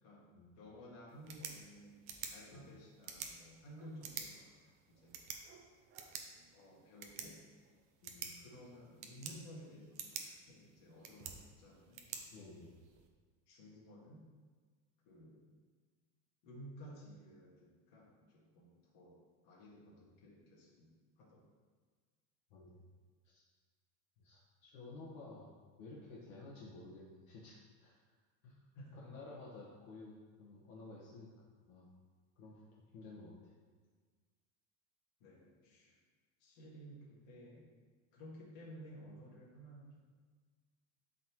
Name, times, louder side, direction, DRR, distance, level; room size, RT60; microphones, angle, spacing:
voice 1, 0.6-2.0 2.3-4.5 4.9-5.2 6.5-7.4 8.4-12.1 12.5-12.6 13.5-14.3 15.0-15.4 16.4-21.5 28.7-29.2 35.2-36.0 36.4-37.6 38.1-40.0, equal, 45° left, -5 dB, 2.1 m, -55 dB
sound 1, 1.1-13.1, right 7 dB, 30° right, 0.5 m, -50 dB
voice 2, 8.0-8.4 12.2-12.8 22.5-22.8 23.2-23.4 24.2-25.5 25.8-27.9 28.4-28.6 28.9-31.3 31.7-31.9 32.4-33.5, left 3 dB, 65° left, -4 dB, 1.6 m, -53 dB
11.5 x 4.0 x 3.1 m, 1.5 s
supercardioid pair, 170°, 45 cm